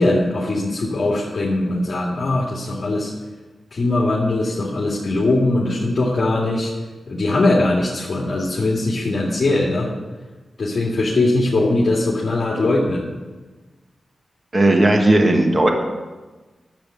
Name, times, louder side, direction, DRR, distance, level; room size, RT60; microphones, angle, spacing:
voice 1, 0.0-3.1 3.7-6.7 7.1-9.9 10.6-13.1, left 2 dB, 50° left, -3 dB, 2.2 m, -20 dB
voice 2, 14.5-15.7, right 1 dB, 30° right, 2 dB, 1.5 m, -15 dB
10.5 x 7.8 x 8.5 m, 1.3 s
wide cardioid pair, 105°, 0 cm